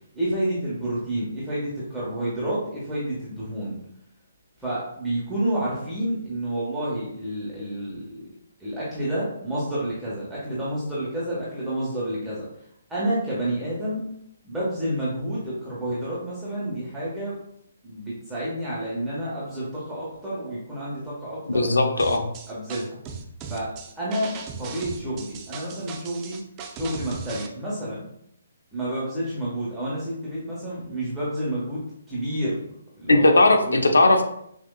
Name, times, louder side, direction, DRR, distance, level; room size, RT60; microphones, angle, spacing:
voice 1, 0.1-3.8 4.6-8.3 8.6-12.5 12.9-14.0 14.4-17.4 17.8-21.7 22.0-22.2 22.5-23.0 23.5-23.7 24.0-24.3 24.6-26.4 26.7-28.1 28.7-31.8 32.1-33.4 33.6-33.8, right 1 dB, 5° right, -9 dB, 1.3 m, -29 dB
voice 2, 21.5-22.3 33.1-34.2, left 2 dB, 85° left, 5 dB, 0.7 m, -18 dB
sound 1, 22.0-27.5, right 5 dB, 25° right, 0.5 m, -38 dB
6.1 x 2.8 x 2.3 m, 0.72 s
hypercardioid pair, 145°, 0 cm